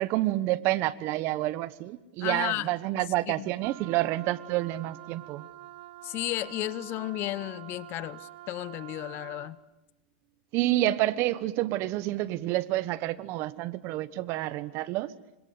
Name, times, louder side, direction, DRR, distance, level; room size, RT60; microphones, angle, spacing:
voice 1, 0.0-5.4 10.5-15.1, right 16 dB, 45° right, 1.2 m, -28 dB
voice 2, 2.2-2.7 2.9-3.5 6.0-9.6, left 15 dB, 40° left, 0.9 m, -33 dB
Wind instrument woodwind instrument, 3.6-9.6, right 14 dB, 65° right, 2.2 m, -47 dB
27.5 x 26.0 x 7.8 m
hypercardioid pair, 125°, 6 cm